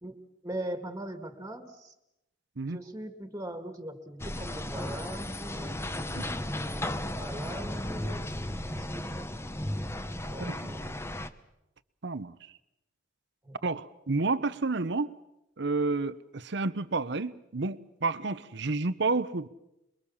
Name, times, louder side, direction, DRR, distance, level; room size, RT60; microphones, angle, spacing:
voice 1, 0.0-1.9 2.7-5.8 6.5-9.3 10.3-11.1 13.4-13.6, right 1 dB, 15° right, 8 dB, 2.0 m, -41 dB
sound 1, 4.2-11.3, left 1 dB, 15° left, 1.0 m, -35 dB
voice 2, 12.0-12.3 13.6-15.1 15.6-19.5, right 3 dB, 65° right, 16 dB, 0.9 m, -30 dB
27.0 x 22.5 x 7.2 m, 0.88 s
head